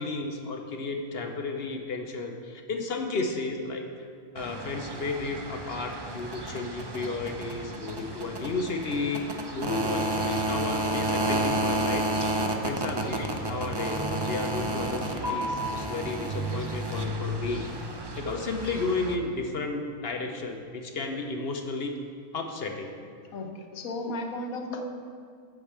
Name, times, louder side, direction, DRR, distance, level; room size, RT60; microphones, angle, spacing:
voice 1, 0.0-3.9 4.3-9.2 9.5-12.0 12.6-17.6 18.2-21.9 22.3-22.9, left 3 dB, 50° left, 4 dB, 0.9 m, -33 dB
sound 1, 4.4-19.1, right 1 dB, 35° right, 0.4 m, -31 dB
voice 2, 12.3-12.9 23.3-24.8, left 2 dB, 75° left, 3 dB, 1.3 m, -36 dB
8.4 x 6.3 x 7.2 m, 2.2 s
omnidirectional pair, 1.5 m